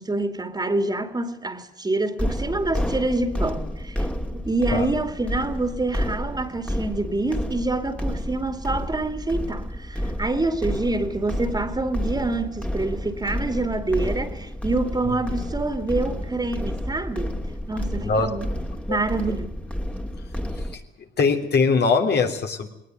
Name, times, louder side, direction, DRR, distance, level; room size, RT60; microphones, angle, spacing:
voice 1, 0.0-4.1 4.3-17.4 17.7-18.5 18.9-19.5, right 2 dB, 20° right, 2.6 m, -26 dB
sound 1, 2.2-20.7, equal, 5° left, 2.4 m, -30 dB
voice 2, 21.2-22.7, left 4 dB, 55° left, 3.3 m, -22 dB
20.0 x 19.0 x 9.4 m
cardioid pair, 90°, 20 cm